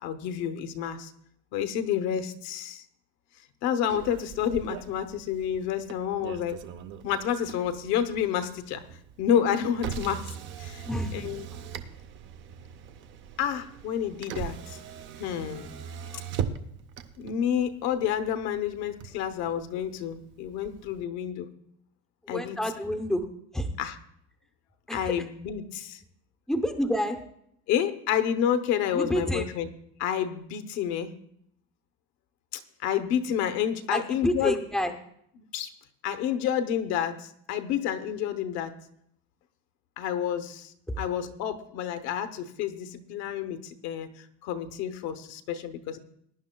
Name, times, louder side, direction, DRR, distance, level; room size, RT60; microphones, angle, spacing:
voice 1, 0.0-1.1 1.5-2.8 3.6-6.6 7.0-8.8 9.2-10.3 10.6-10.9 11.1-11.4 13.4-14.8 15.2-15.8 17.2-21.5 22.3-22.6 23.8-24.0 24.9-26.0 27.7-29.7 30.0-31.1 32.5-34.6 35.4-35.7 36.0-38.7 40.0-46.0, left 9 dB, 55° left, 9 dB, 0.9 m, -29 dB
Motor vehicle (road), 3.9-21.0, right 8 dB, 35° right, 0.6 m, -41 dB
voice 2, 10.8-11.3 22.2-23.3 23.5-23.7 24.9-25.1 26.5-27.2 28.9-29.5 33.9-34.9, equal, ahead, 5 dB, 0.7 m, -28 dB
21.0 x 10.5 x 2.2 m, 0.70 s
cardioid pair, 175°, 33 cm